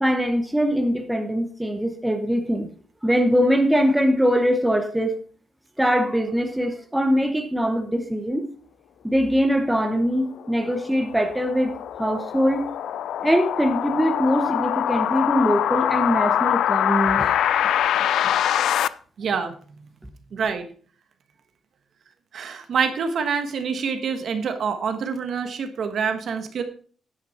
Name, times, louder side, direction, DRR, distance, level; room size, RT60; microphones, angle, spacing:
voice 1, 0.0-2.7 3.0-5.1 5.8-8.5 9.0-12.6 13.2-17.3, equal, 5° right, 6 dB, 0.9 m, -22 dB
sound 1, 10.2-18.9, left 10 dB, 85° left, 0.4 m, -24 dB
voice 2, 19.2-19.5 20.3-20.7 22.3-26.6, right 6 dB, 50° right, 8 dB, 1.3 m, -26 dB
10.0 x 8.5 x 4.3 m, 0.43 s
wide cardioid pair, 175°, 0 cm